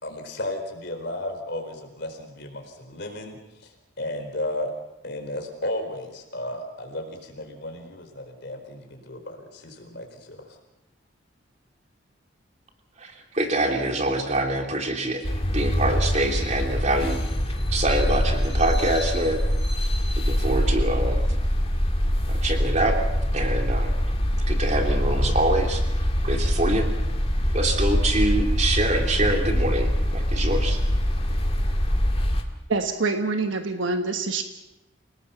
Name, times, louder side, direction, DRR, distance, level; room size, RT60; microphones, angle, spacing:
voice 1, 0.0-4.7 5.0-10.6, left 1 dB, 55° left, 5 dB, 4.4 m, -34 dB
voice 2, 13.0-15.2 15.5-17.2 17.4-19.4 20.1-21.2 22.3-23.0 23.3-24.0 24.5-26.9 27.5-30.8, right 1 dB, 35° right, 2 dB, 3.1 m, -25 dB
sound 1, 15.2-32.4, equal, 30° left, 2.2 m, -24 dB
voice 3, 32.7-34.4, right 3 dB, 75° right, 6 dB, 1.3 m, -25 dB
29.0 x 18.5 x 5.8 m, 0.93 s
head